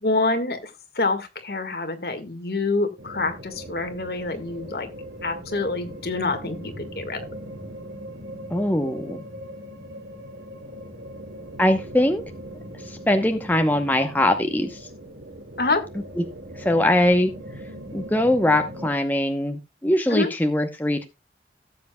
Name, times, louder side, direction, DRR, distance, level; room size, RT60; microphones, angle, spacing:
voice 1, 0.0-4.9 5.2-7.2 15.6-15.9 20.1-20.3, left 3 dB, 60° left, 7 dB, 1.8 m, -26 dB
sound 1, 3.0-18.9, equal, 80° right, 2.3 m, -39 dB
voice 2, 8.5-9.2 11.6-12.2 12.8-14.8 16.2-16.3 16.6-17.3 17.9-21.1, left 1 dB, 10° left, 5 dB, 0.9 m, -21 dB
17.5 x 7.7 x 2.3 m, 0.24 s
head